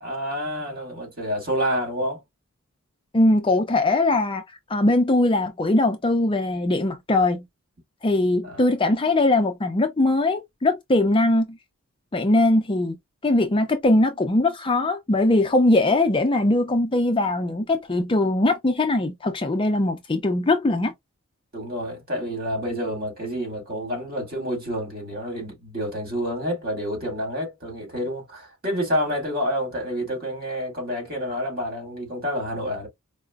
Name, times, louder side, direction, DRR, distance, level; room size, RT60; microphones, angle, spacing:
voice 1, 0.0-2.2 8.4-8.6 21.5-32.9, equal, 45° right, 2.1 m, -28 dB
voice 2, 3.1-4.4 4.7-7.4 8.0-11.6 12.1-13.0 13.2-20.9, left 2 dB, 25° left, 0.5 m, -21 dB
4.8 x 2.1 x 2.3 m
head